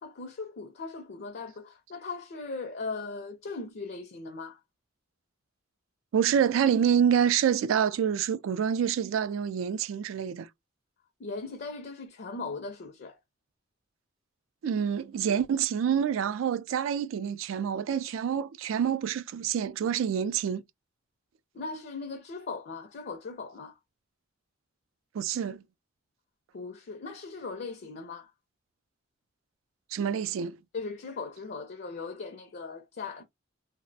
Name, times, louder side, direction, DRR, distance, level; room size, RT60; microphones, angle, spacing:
voice 1, 0.0-4.6 11.2-13.2 21.5-23.8 26.5-28.3 30.7-33.2, left 4 dB, 55° left, 0.4 m, -39 dB
voice 2, 6.1-10.5 14.6-20.6 25.1-25.6 29.9-30.6, right 8 dB, 80° right, 0.3 m, -27 dB
2.4 x 2.0 x 2.6 m
head